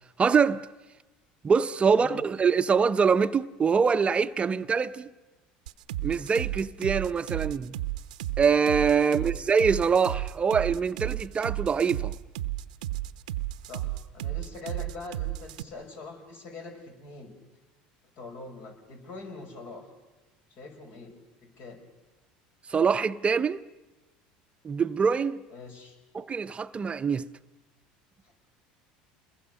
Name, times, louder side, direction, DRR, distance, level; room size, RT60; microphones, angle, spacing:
voice 1, 0.2-0.6 1.4-5.1 6.0-7.7 8.4-12.1 22.7-23.6 24.6-25.4 26.1-27.2, right 6 dB, 30° right, 0.7 m, -24 dB
sound 1, 5.7-15.6, right 15 dB, 85° right, 0.8 m, -33 dB
voice 2, 13.7-17.3 18.2-19.9 20.5-21.1 21.6-21.8 25.5-26.0 28.2-28.3, left 3 dB, 60° left, 6.1 m, -43 dB
28.0 x 21.5 x 6.5 m
hypercardioid pair, 85°, 4 cm